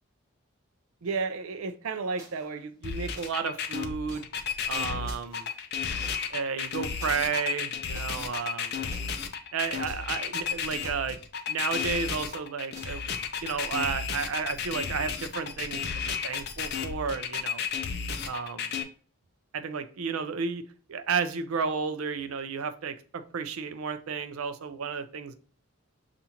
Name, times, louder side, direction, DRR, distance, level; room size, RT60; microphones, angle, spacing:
voice 1, 1.0-4.3 4.7-5.5 6.3-8.8 9.5-11.2 11.5-13.1 13.4-17.6 18.2-18.7 19.5-20.6 20.9-25.3, right 5 dB, 80° right, 11 dB, 0.5 m, -32 dB
sound 1, 2.2-2.5 3.1-3.3 4.1-4.2 5.1-6.2 7.0-7.1 7.9-8.0 8.9-9.1 9.9-10.1 10.6-11.0 11.8-12.0 12.7-13.1, right 1 dB, 15° right, 0.9 m, -48 dB
sound 2, 2.8-18.8, left 6 dB, 50° left, 0.5 m, -33 dB
6.8 x 2.5 x 2.8 m, 0.42 s
head